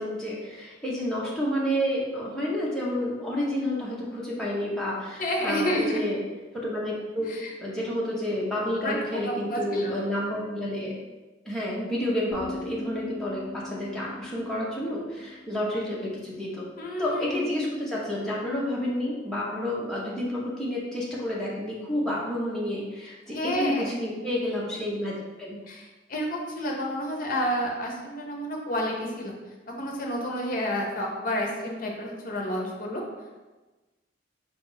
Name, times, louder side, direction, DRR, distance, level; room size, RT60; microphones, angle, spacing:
voice 1, 0.0-6.2 6.5-7.3 7.6-10.9 11.4-16.6 17.0-25.1 25.4-25.6, left 1 dB, 5° left, -6 dB, 0.9 m, -30 dB
voice 2, 5.2-6.0 7.3-7.5 8.8-9.0 9.2-9.9 16.8-17.4 23.3-24.0 25.7-29.3 29.7-33.0, equal, 45° left, 0 dB, 0.7 m, -30 dB
sound 1, 12.3-16.2, left 1 dB, 55° right, 0.9 m, -41 dB
4.7 x 2.5 x 4.0 m, 1.2 s
head